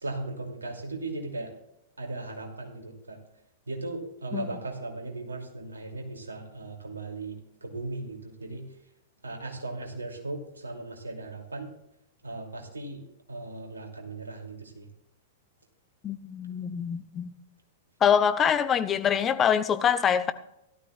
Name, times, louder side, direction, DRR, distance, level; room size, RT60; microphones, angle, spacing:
voice 1, 0.0-1.5 2.0-3.2 3.7-8.7 9.2-11.7 12.2-13.0 13.3-14.9, right 2 dB, 85° right, 2.6 m, -37 dB
voice 2, 16.0-17.3 18.0-20.3, left 8 dB, 25° left, 0.9 m, -24 dB
16.5 x 13.0 x 2.4 m
figure-of-eight pair, 100°, 0 cm